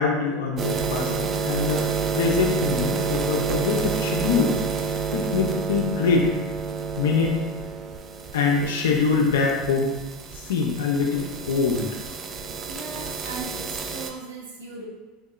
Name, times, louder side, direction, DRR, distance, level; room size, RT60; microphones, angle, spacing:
voice 1, 0.0-1.9 2.1-4.6 5.1-6.3 7.0-7.4 8.3-9.9 10.5-11.9, left 5 dB, 85° left, 0 dB, 0.5 m, -23 dB
sound 1, 0.6-14.1, right 6 dB, 40° right, 0.3 m, -29 dB
voice 2, 12.7-14.9, right 4 dB, 85° right, -2 dB, 0.6 m, -37 dB
3.7 x 2.7 x 2.3 m, 1.1 s
hypercardioid pair, 95°, 0 cm